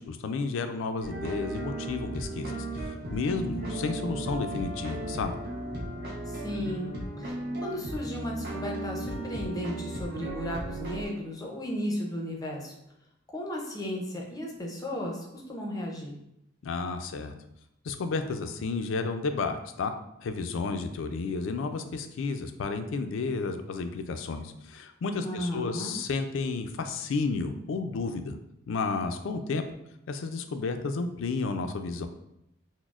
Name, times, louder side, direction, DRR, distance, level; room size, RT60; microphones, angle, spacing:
voice 1, 0.0-5.3 16.6-17.3 17.8-19.9 20.2-28.4 28.7-29.6 30.1-32.1, left 4 dB, 65° left, 8 dB, 0.3 m, -32 dB
sound 1, 1.0-11.1, right 1 dB, 45° right, 0.8 m, -36 dB
voice 2, 6.3-12.7 13.3-16.2 25.2-26.0, equal, 15° left, -1 dB, 0.6 m, -35 dB
6.0 x 2.0 x 2.4 m, 0.82 s
head